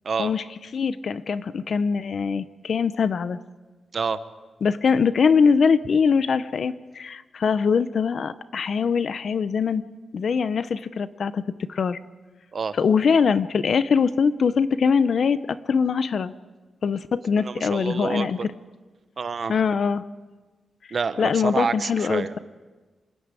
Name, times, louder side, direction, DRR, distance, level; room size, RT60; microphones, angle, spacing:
voice 1, 0.7-3.4 4.6-9.8 10.1-11.4 11.7-12.0 12.8-16.3 16.8-18.5 19.5-20.0 21.2-22.4, left 6 dB, 55° left, 14 dB, 0.7 m, -22 dB
voice 2, 17.4-18.3 19.2-19.6 20.9-22.4, right 5 dB, 45° right, 12 dB, 0.9 m, -28 dB
26.5 x 12.0 x 9.0 m, 1.3 s
wide cardioid pair, 155°, 0 cm